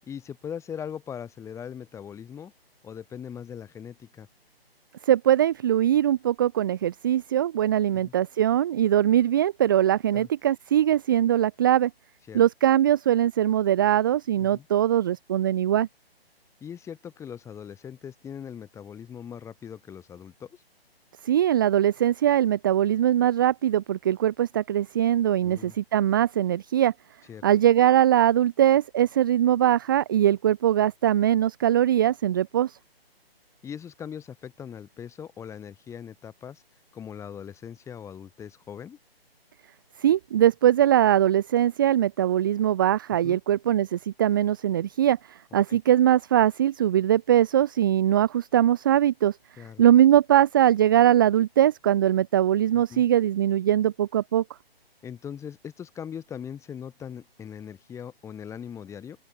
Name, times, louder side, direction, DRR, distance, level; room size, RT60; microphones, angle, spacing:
voice 1, 0.0-2.5 2.8-4.3 7.9-8.1 10.1-10.3 12.3-12.4 14.4-14.7 16.6-20.6 25.4-25.8 27.3-27.4 33.6-36.6 36.9-39.0 43.2-43.4 45.7-45.8 49.6-49.8 52.7-53.0 55.0-59.2, left 8 dB, 10° left, 7.6 m, -40 dB
voice 2, 5.0-11.9 12.3-15.9 21.2-26.9 27.4-32.8 40.0-49.4 49.8-54.4, right 11 dB, 20° right, 0.7 m, -21 dB
open air
figure-of-eight pair, 145°, 31 cm